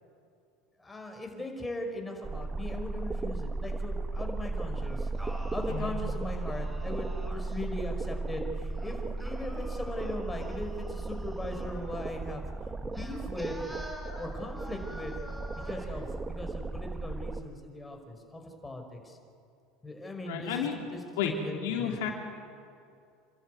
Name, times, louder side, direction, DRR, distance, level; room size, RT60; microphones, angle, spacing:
voice 1, 0.8-5.1 5.5-12.5 12.8-13.8 14.2-15.2 15.6-19.2 19.8-21.0 21.4-21.9, left 1 dB, 15° left, 3 dB, 5.4 m, -39 dB
sound 1, 2.2-17.4, right 3 dB, 20° right, 1.2 m, -36 dB
Singing, 4.8-7.6 8.7-11.9 12.9-16.0, equal, ahead, 5.0 m, -47 dB
voice 2, 5.6-6.0 20.3-20.8 21.2-22.1, left 7 dB, 75° left, 2 dB, 3.0 m, -32 dB
28.5 x 13.0 x 9.6 m, 2.4 s
hypercardioid pair, 90°, 0 cm